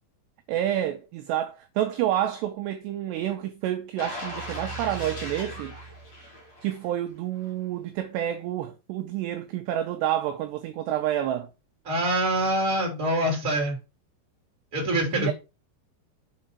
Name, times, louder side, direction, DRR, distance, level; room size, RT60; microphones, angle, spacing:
voice 1, 0.5-5.7 6.6-11.5 15.1-15.3, right 12 dB, 80° right, 2.6 m, -29 dB
sound 1, 4.0-6.9 7.3-7.5, equal, 45° left, 2.7 m, -37 dB
voice 2, 11.8-13.8 14.7-15.3, right 1 dB, 20° right, 3.3 m, -25 dB
7.6 x 4.5 x 5.8 m
omnidirectional pair, 5.5 m